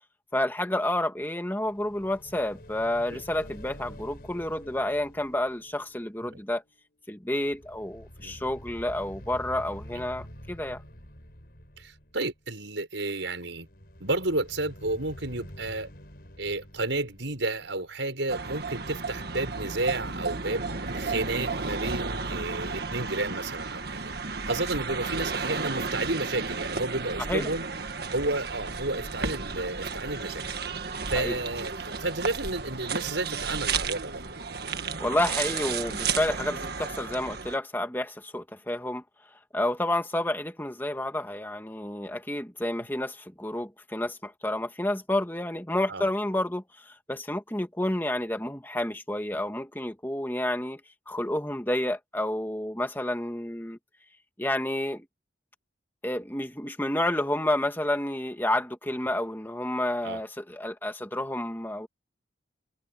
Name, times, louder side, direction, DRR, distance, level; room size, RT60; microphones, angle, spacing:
voice 1, 0.3-6.6 7.1-10.8 27.3-27.5 31.2-31.4 35.0-39.0 39.5-50.8 51.1-53.8 54.4-55.1 56.0-61.9, left 1 dB, 10° left, 1.9 m, -30 dB
sound 1, 1.6-7.0 7.3-12.5 13.5-18.3, equal, 50° left, 6.0 m, -47 dB
voice 2, 11.8-13.7 14.0-15.9 16.4-24.1 24.5-27.7 28.1-30.4 31.1-34.2 45.9-46.1 60.0-60.2, right 2 dB, 75° right, 5.9 m, -31 dB
sound 2, 18.3-37.6, right 4 dB, 55° right, 1.8 m, -33 dB
head